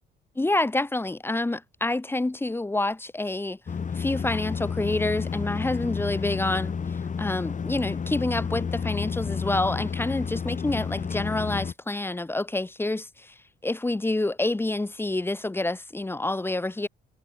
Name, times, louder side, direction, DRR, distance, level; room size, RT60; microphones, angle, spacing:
voice 1, 0.4-3.6 3.9-6.7 7.2-13.3 13.6-16.9, left 2 dB, 10° left, 0.8 m, -28 dB
Porter Prop plane Int, 3.7-11.7, left 6 dB, 40° left, 2.1 m, -31 dB
cardioid pair, 90°, 20 cm